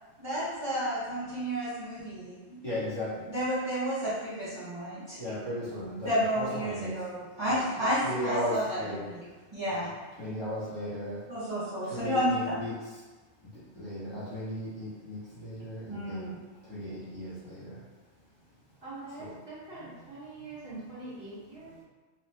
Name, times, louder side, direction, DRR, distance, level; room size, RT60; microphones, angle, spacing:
voice 1, 0.2-2.6 3.3-5.2 6.0-8.8 9.1-9.2 9.5-9.9 11.3-12.5 15.9-16.4, equal, 25° right, -13 dB, 0.8 m, -31 dB
voice 2, 2.6-3.2 5.2-7.1 7.4-7.6 8.0-9.1 9.6-9.9 10.2-11.2 11.8-12.7 13.7-16.3 16.7-17.8 19.2-19.3, equal, 20° left, -13 dB, 1.1 m, -36 dB
voice 3, 18.8-21.8, right 2 dB, 60° right, -10 dB, 1.3 m, -43 dB
2.7 x 2.4 x 3.3 m, 1.3 s
omnidirectional pair, 1.2 m